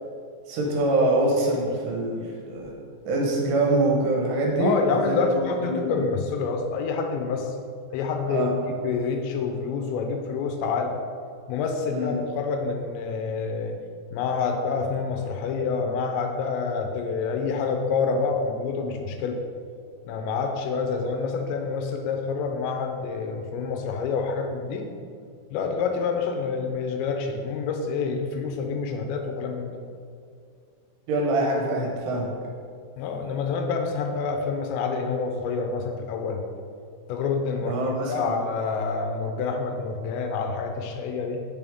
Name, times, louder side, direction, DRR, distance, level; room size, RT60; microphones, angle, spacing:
voice 1, 0.5-2.7 3.1-6.1 8.3-8.6 11.9-12.1 31.1-32.3 37.7-38.4, right 2 dB, 75° right, -1 dB, 2.9 m, -24 dB
voice 2, 4.6-7.5 7.9-10.9 11.5-13.8 14.1-19.4 20.1-24.9 25.5-29.8 33.0-36.4 37.1-41.5, left 5 dB, 80° left, 4 dB, 2.9 m, -27 dB
8.2 x 6.9 x 3.5 m, 2.2 s
omnidirectional pair, 5.2 m